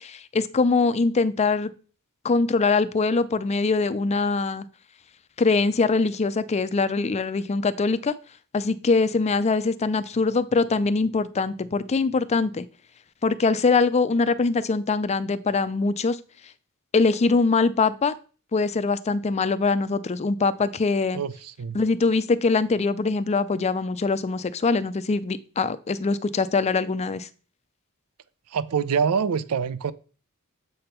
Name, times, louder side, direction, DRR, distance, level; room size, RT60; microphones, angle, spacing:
voice 1, 0.0-1.7 2.2-4.6 5.4-8.1 8.5-12.7 13.2-16.2 16.9-18.1 18.5-21.2 21.7-27.3, left 4 dB, 30° left, 0.4 m, -23 dB
voice 2, 21.1-21.8 28.5-29.9, right 6 dB, 80° right, 0.5 m, -25 dB
7.7 x 3.5 x 5.7 m
head